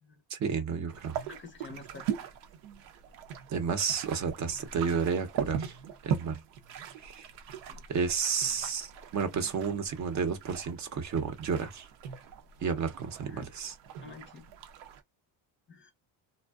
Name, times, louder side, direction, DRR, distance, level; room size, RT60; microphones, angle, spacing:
voice 1, 0.3-1.2 3.5-5.8 6.0-6.4 7.0-7.3 7.9-11.9 12.6-13.7, right 6 dB, 45° right, 0.6 m, -31 dB
sound 1, 0.9-15.0, right 8 dB, 85° right, 0.6 m, -40 dB
voice 2, 1.2-2.2 7.7-7.8 13.3-13.5 14.0-14.5 15.7-15.9, left 4 dB, 30° left, 0.5 m, -48 dB
2.6 x 2.1 x 2.2 m
supercardioid pair, 90°, 42 cm